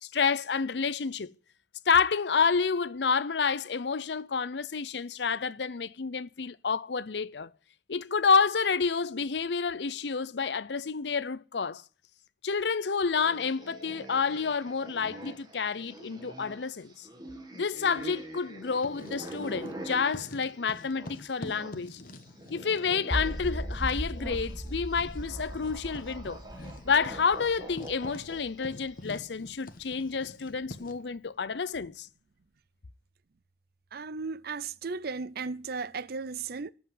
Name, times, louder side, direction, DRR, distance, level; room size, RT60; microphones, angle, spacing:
voice 1, 0.0-1.3 1.9-7.5 7.9-11.8 12.4-17.1 17.5-22.0 22.5-26.4 26.9-32.1, left 5 dB, 70° left, 0.6 m, -29 dB
sound 1, 13.1-21.8 22.1-28.9, right 1 dB, 25° right, 2.3 m, -45 dB
Writing, 18.7-19.8 20.1-31.1, left 1 dB, 55° left, 1.2 m, -47 dB
sound 2, 23.1-29.2, equal, ahead, 0.9 m, -37 dB
voice 2, 33.9-36.7, right 4 dB, 60° right, 0.6 m, -35 dB
13.5 x 5.6 x 9.4 m
head